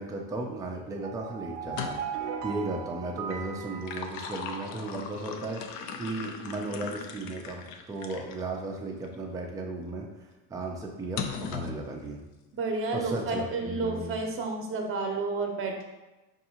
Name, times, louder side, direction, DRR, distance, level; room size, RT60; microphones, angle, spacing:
voice 1, 0.0-5.6 6.0-10.1 10.5-12.2 12.9-14.2, right 2 dB, 10° right, 0 dB, 0.4 m, -35 dB
sound 1, 1.0-4.9, right 6 dB, 60° right, 0.5 m, -38 dB
sound 2, 1.6-2.3 3.6-8.4 9.0-9.2 11.2-11.8, left 6 dB, 75° left, 0.6 m, -38 dB
voice 2, 12.5-15.8, right 3 dB, 25° right, 2 dB, 0.8 m, -31 dB
4.6 x 2.7 x 2.9 m, 1.1 s
supercardioid pair, 100°, 47 cm